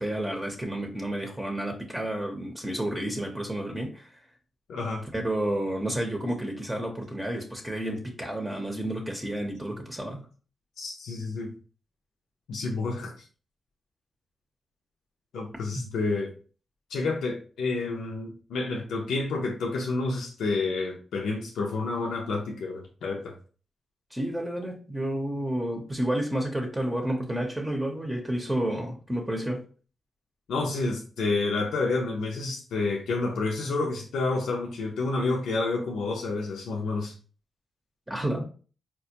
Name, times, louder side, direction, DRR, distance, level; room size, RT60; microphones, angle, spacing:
voice 1, 0.0-4.1 5.1-10.3 15.7-15.9 24.1-29.6 38.1-38.4, right 1 dB, 15° right, 0.7 m, -30 dB
voice 2, 4.7-5.1 10.8-11.5 12.5-13.1 15.3-16.3 16.9-23.4 30.5-37.2, left 3 dB, 85° left, 0.5 m, -29 dB
4.3 x 2.2 x 2.8 m
cardioid pair, 60°, 0 cm